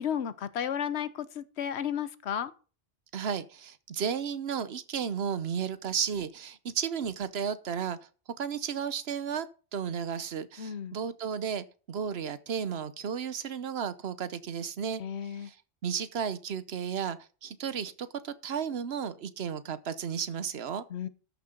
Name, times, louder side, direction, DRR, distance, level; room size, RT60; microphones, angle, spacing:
voice 1, 0.0-2.5 10.6-11.0 15.0-15.5 20.9-21.1, left 8 dB, 85° left, 1.1 m, -33 dB
voice 2, 3.1-8.0 8.4-9.5 9.7-15.0 15.3-15.6 15.8-20.8, right 7 dB, 70° right, 1.1 m, -33 dB
13.0 x 6.6 x 5.2 m
omnidirectional pair, 1.1 m